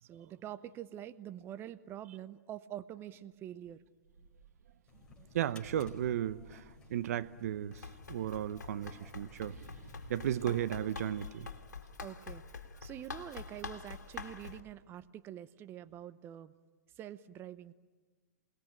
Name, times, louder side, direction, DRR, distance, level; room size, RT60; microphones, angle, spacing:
voice 1, 0.0-3.8 10.4-10.6 12.0-16.5 17.0-17.7, right 11 dB, 25° right, 14 dB, 0.8 m, -46 dB
sound 1, 3.1-3.2 3.6-7.3 8.2-11.8, right 3 dB, 80° right, 4.0 m, -57 dB
sound 2, 4.9-10.8, left 4 dB, 10° left, 5.0 m, -57 dB
voice 2, 5.3-6.6 6.9-7.8 8.1-9.6 10.1-11.5, right 11 dB, 60° right, 14 dB, 0.8 m, -34 dB
Run, 7.7-14.6, left 4 dB, 85° left, 2.1 m, -46 dB
28.0 x 20.0 x 9.0 m, 1.4 s
hypercardioid pair, 115°, 9 cm